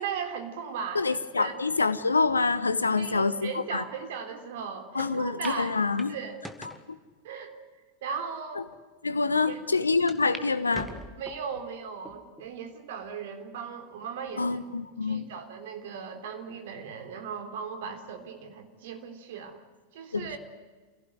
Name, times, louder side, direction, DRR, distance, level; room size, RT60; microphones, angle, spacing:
voice 1, 0.0-1.5 3.0-5.7 6.1-6.4 7.2-7.6 8.0-8.7 9.5-9.6 10.3-10.4 11.2-14.6 15.0-19.6 19.9-20.4, right 6 dB, 55° right, 7 dB, 3.8 m, -37 dB
voice 2, 0.9-3.8 4.9-6.1 6.9-7.0 9.0-10.9 14.4-15.3 20.1-20.3, left 4 dB, 80° left, 13 dB, 1.4 m, -26 dB
sound 1, 5.0-5.1 5.4-5.6 6.0-6.9 7.5-7.6 8.3-8.4 8.7-8.8 10.1-10.5 10.7-11.5 12.1-12.5 13.0-13.1 14.3-14.7, equal, ahead, 2.2 m, -43 dB
28.5 x 17.5 x 9.7 m, 1.4 s
figure-of-eight pair, 90°, 0 cm